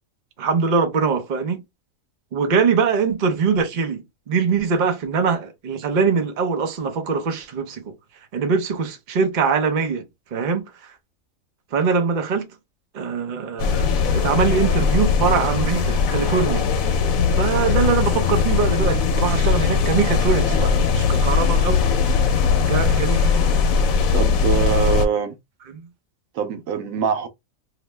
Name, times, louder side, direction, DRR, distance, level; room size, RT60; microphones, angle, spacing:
voice 1, 0.4-1.6 2.3-7.9 8.3-10.0 10.3-10.6 11.7-12.5 12.9-16.7 17.3-21.8 22.2-22.3 22.7-23.4 25.7-25.8, right 5 dB, 45° right, 0.7 m, -22 dB
sound 1, 13.6-25.1, left 5 dB, 85° left, 1.0 m, -19 dB
voice 2, 24.1-25.4 26.4-27.3, right 8 dB, 80° right, 1.0 m, -23 dB
2.9 x 2.0 x 3.2 m
omnidirectional pair, 1.4 m